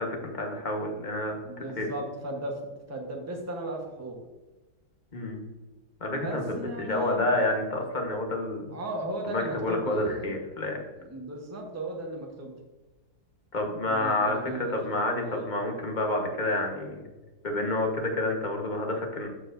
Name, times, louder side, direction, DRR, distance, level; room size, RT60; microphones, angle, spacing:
voice 1, 0.0-1.3 1.8-1.9 5.1-5.5 6.0-6.4 6.8-8.7 9.3-10.8 13.5-17.0 17.4-19.3, left 2 dB, 30° left, 2 dB, 1.3 m, -29 dB
voice 2, 1.4-4.2 6.1-7.3 8.7-10.4 11.0-12.5 13.9-15.5, right 1 dB, 10° right, 1 dB, 1.0 m, -36 dB
13.0 x 4.8 x 2.6 m, 1.2 s
omnidirectional pair, 1.7 m